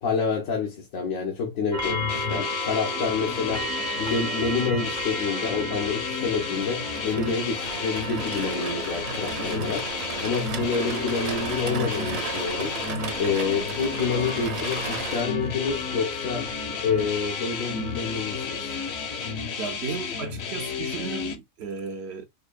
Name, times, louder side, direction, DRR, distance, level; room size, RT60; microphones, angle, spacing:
voice 1, 0.0-3.7 4.0-12.8 13.2-16.5 16.8-18.8, left 5 dB, 90° left, 1.3 m, -28 dB
sound 1, 1.7-19.3, equal, 10° left, 0.3 m, -36 dB
sound 2, 1.8-21.4, left 5 dB, 60° left, 0.8 m, -32 dB
sound 3, 6.2-15.2, right 6 dB, 85° right, 1.3 m, -36 dB
voice 2, 19.6-22.3, right 5 dB, 65° right, 0.7 m, -34 dB
4.9 x 2.5 x 2.2 m
omnidirectional pair, 1.4 m